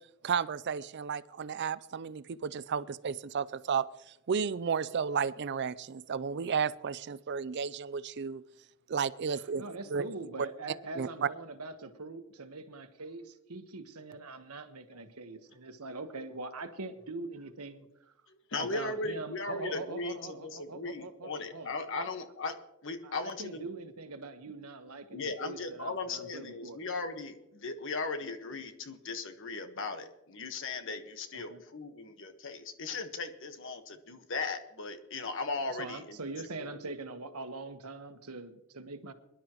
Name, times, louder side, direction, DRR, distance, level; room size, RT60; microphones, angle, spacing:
voice 1, 0.2-8.4 8.9-9.6 9.9-10.0 10.4-10.5 11.0-11.3, right 6 dB, 50° right, 17 dB, 0.4 m, -33 dB
voice 2, 9.6-17.9 18.5-22.0 23.0-26.8 31.3-31.6 35.7-39.1, right 3 dB, 85° right, 8 dB, 1.3 m, -43 dB
voice 3, 18.3-22.5 22.8-23.7 25.1-36.2 36.6-37.0, left 3 dB, 60° left, 7 dB, 1.4 m, -37 dB
23.0 x 11.5 x 3.0 m, 0.88 s
head